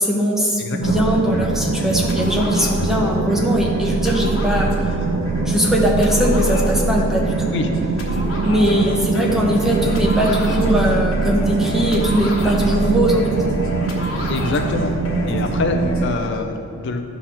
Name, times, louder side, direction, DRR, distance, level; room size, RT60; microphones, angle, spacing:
voice 1, 0.0-4.8 5.5-7.6 8.4-13.2, equal, ahead, -2 dB, 0.9 m, -20 dB
voice 2, 0.6-1.0 7.5-7.7 14.3-14.9 15.3-17.0, left 3 dB, 60° left, 5 dB, 0.5 m, -25 dB
sound 1, 0.8-16.4, equal, 85° left, 1.2 m, -29 dB
sound 2, 0.8-16.2, right 3 dB, 85° right, 0.4 m, -23 dB
10.0 x 3.9 x 5.8 m, 2.5 s
head